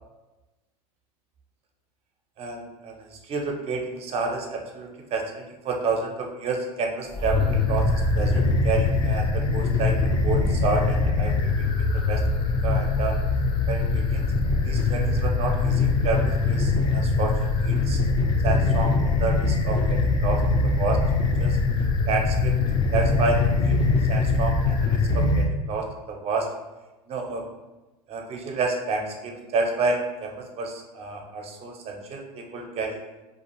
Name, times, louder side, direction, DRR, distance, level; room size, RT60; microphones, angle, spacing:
voice 1, 2.4-3.0 3.3-10.0 10.2-11.5 12.1-12.2 12.6-13.1 13.7-14.2 14.6-18.0 18.4-21.0 21.4-21.6 22.1-22.5 22.9-23.8 24.1-26.5 27.1-27.4 28.1-33.0, right 4 dB, 30° right, 1 dB, 0.5 m, -29 dB
sound 1, 7.1-25.5, left 3 dB, 25° left, 0.4 m, -22 dB
2.4 x 2.3 x 3.0 m, 1.1 s
hypercardioid pair, 110°, 20 cm